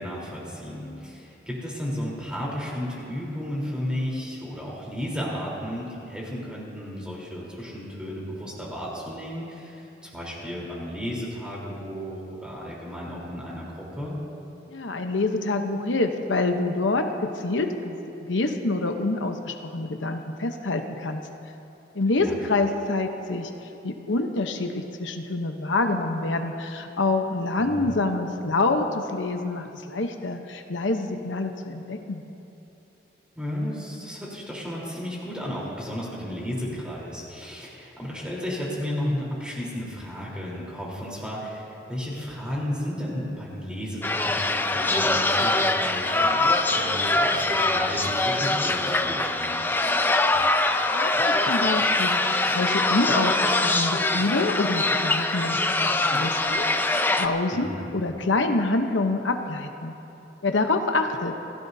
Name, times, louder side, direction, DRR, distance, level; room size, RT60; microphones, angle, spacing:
voice 1, 0.0-14.2 22.2-22.3 27.6-27.9 33.3-49.6 57.5-57.9, equal, 5° right, -5 dB, 3.7 m, -33 dB
voice 2, 14.7-18.0 18.3-21.2 21.9-32.2 50.9-52.2 52.5-56.6 57.1-59.9 60.4-61.3, left 2 dB, 85° left, 5 dB, 0.9 m, -26 dB
sound 1, 44.0-57.3, left 2 dB, 10° left, 0.5 m, -23 dB
27.5 x 16.5 x 2.7 m, 2.9 s
head